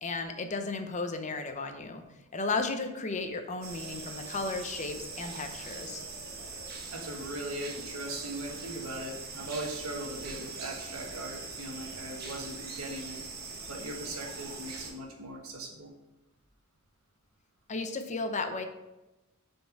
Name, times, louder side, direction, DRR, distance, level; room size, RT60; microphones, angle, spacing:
voice 1, 0.0-2.0 2.3-6.0 17.7-18.7, left 3 dB, 35° left, 7 dB, 0.7 m, -34 dB
sound 1, 3.6-14.9, right 4 dB, 50° right, 1.3 m, -42 dB
voice 2, 6.9-13.2 13.7-15.9, right 1 dB, 90° right, 0 dB, 1.3 m, -39 dB
6.9 x 4.4 x 4.6 m, 1.0 s
head